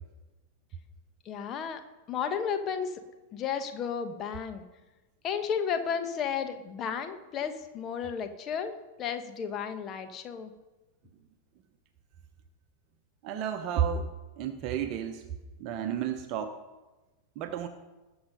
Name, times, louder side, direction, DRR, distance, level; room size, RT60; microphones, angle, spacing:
voice 1, 1.2-1.8 2.1-3.0 3.3-4.6 5.2-8.7 9.0-10.5, left 7 dB, 30° left, 8 dB, 1.4 m, -33 dB
voice 2, 13.2-14.1 14.4-15.3 15.6-16.6 17.4-17.7, right 8 dB, 40° right, 8 dB, 0.9 m, -31 dB
20.0 x 7.2 x 5.3 m, 1.1 s
figure-of-eight pair, 90°, 0 cm